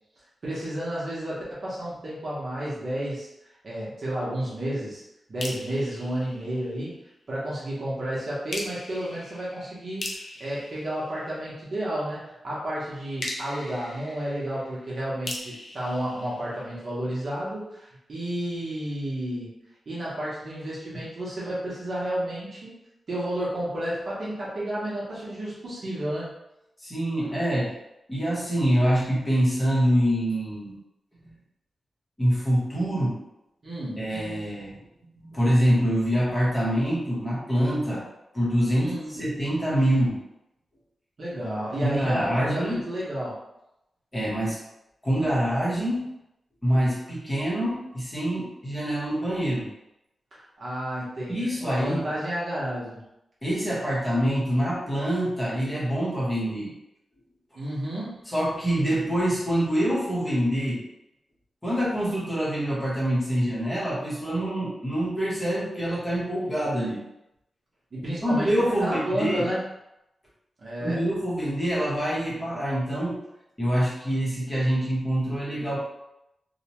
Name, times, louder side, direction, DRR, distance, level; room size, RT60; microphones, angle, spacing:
voice 1, 0.4-3.3 3.6-5.0 5.3-7.0 7.3-10.1 10.4-19.5 19.9-22.7 23.1-26.3 33.6-34.0 38.8-39.2 41.2-43.4 50.3-53.0 57.5-58.1 67.9-68.5 68.8-69.6 70.6-71.0, right 1 dB, 45° right, -7 dB, 0.8 m, -31 dB
sound 1, 5.4-7.1 8.5-11.8 13.2-17.1, left 1 dB, 50° left, 0.5 m, -40 dB
voice 2, 26.8-27.8 28.1-30.7 31.2-31.3 32.2-33.2 34.0-34.8 35.1-38.1 38.3-40.2 41.8-42.9 44.1-44.6 45.0-46.1 46.6-49.7 51.3-52.1 53.4-56.7 58.3-60.9 61.6-67.0 68.2-69.5 70.8-73.2 73.6-75.8, equal, 15° left, -6 dB, 0.8 m, -25 dB
2.8 x 2.1 x 2.9 m, 0.88 s
wide cardioid pair, 170°, 0 cm